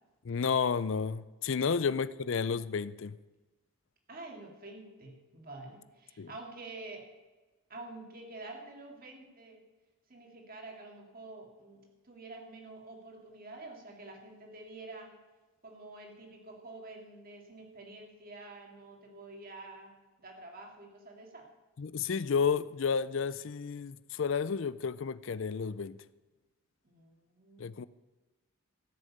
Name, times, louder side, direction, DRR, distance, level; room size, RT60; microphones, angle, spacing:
voice 1, 0.2-3.1 6.2-6.3 21.8-26.0 27.6-27.9, left 6 dB, 60° left, 16 dB, 0.4 m, -31 dB
voice 2, 4.1-7.1 7.7-9.6 10.1-15.2 15.6-21.5 26.8-27.7, right 2 dB, 40° right, 2 dB, 2.3 m, -48 dB
14.5 x 6.5 x 8.6 m, 1.2 s
head